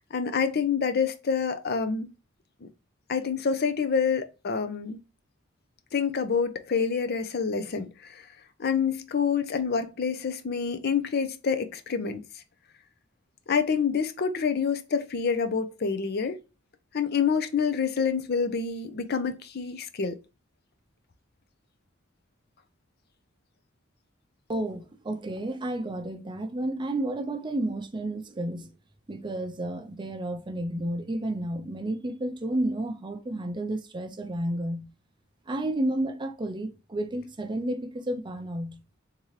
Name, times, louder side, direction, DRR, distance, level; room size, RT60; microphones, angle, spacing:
voice 1, 0.1-2.1 2.6-2.7 3.1-5.0 5.9-8.2 8.6-12.2 13.5-16.4 16.9-20.1, left 6 dB, 55° left, 0.5 m, -27 dB
voice 2, 24.5-28.7 29.1-34.9 35.5-38.8, right 1 dB, 25° right, 0.5 m, -31 dB
3.7 x 2.8 x 3.0 m
head